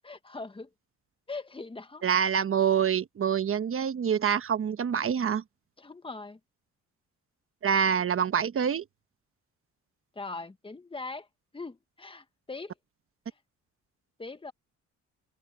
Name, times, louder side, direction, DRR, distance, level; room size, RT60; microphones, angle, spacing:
voice 1, 0.0-0.7 1.3-2.1 5.8-6.4 10.1-11.3 11.5-12.7 14.2-14.5, left 3 dB, 15° left, 1.6 m, -40 dB
voice 2, 2.0-5.4 7.6-8.8, right 8 dB, 45° right, 1.2 m, -26 dB
open air
cardioid pair, 90°, 30 cm